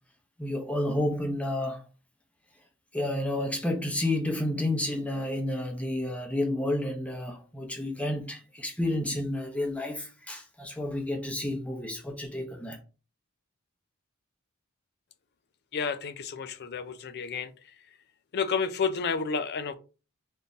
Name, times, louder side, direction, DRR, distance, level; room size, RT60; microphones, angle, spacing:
voice 1, 0.4-1.8 2.9-12.8, left 1 dB, 5° left, 0.7 m, -30 dB
voice 2, 15.7-17.5 18.3-19.7, left 5 dB, 50° left, 0.4 m, -30 dB
3.6 x 2.7 x 4.0 m
head